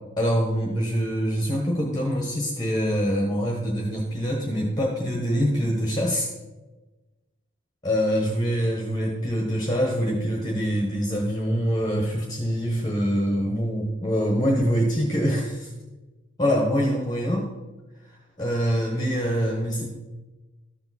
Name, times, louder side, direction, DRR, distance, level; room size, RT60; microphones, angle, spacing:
voice 1, 0.2-6.3 7.8-15.7 16.4-17.5 18.1-19.9, equal, 20° left, -1 dB, 1.1 m, -24 dB
13.0 x 7.0 x 4.2 m, 1.2 s
head